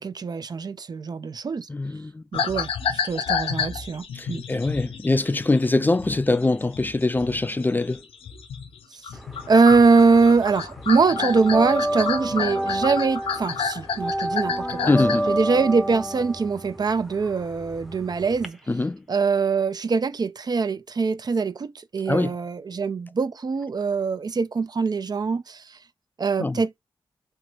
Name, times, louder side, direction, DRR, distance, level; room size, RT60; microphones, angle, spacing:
voice 1, 0.0-1.7 2.3-4.4 9.5-14.9 15.3-18.6 19.1-25.8 26.2-26.7, right 4 dB, 45° right, 0.4 m, -22 dB
voice 2, 1.7-2.2 4.1-8.0 14.9-15.3 18.7-19.0 22.1-22.3 26.4-26.6, left 2 dB, 20° left, 0.4 m, -23 dB
sound 1, 2.3-8.8 9.0-15.4, left 7 dB, 80° left, 0.6 m, -30 dB
sound 2, 9.2-10.3 10.5-18.5, right 1 dB, ahead, 0.7 m, -28 dB
3.1 x 2.9 x 2.9 m
supercardioid pair, 45°, 10 cm